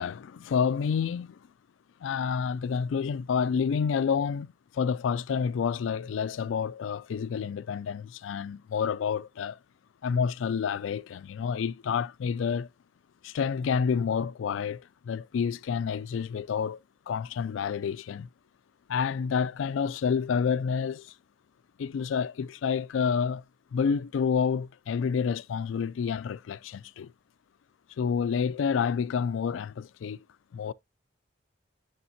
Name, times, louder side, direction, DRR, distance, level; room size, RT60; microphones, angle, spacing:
voice 1, 0.0-1.4 2.0-9.6 10.0-12.7 13.2-16.8 17.1-18.3 18.9-21.1 21.8-23.4 23.7-27.1 28.0-30.2 30.5-30.7, left 6 dB, 85° left, 0.3 m, -29 dB
7.0 x 6.5 x 2.7 m
head